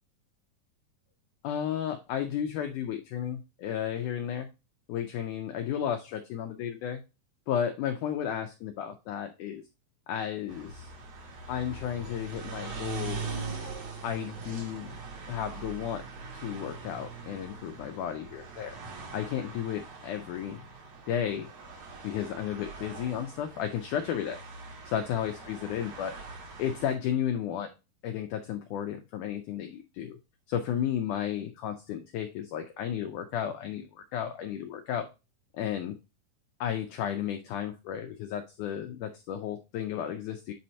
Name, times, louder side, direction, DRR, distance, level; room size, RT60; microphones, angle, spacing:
voice 1, 1.4-4.5 4.9-7.0 7.5-9.6 10.1-10.9 11.5-13.4 14.0-15.0 15.3-16.0 16.3-18.8 19.1-20.6 21.1-21.5 22.0-24.4 24.8-26.1 26.6-27.7 28.0-30.2 30.5-35.1 35.5-36.0 36.6-40.5, left 9 dB, 90° left, 6 dB, 1.7 m, -33 dB
sound 1, 10.5-26.9, right 4 dB, 55° right, 2.1 m, -42 dB
8.2 x 2.8 x 4.3 m, 0.27 s
omnidirectional pair, 4.4 m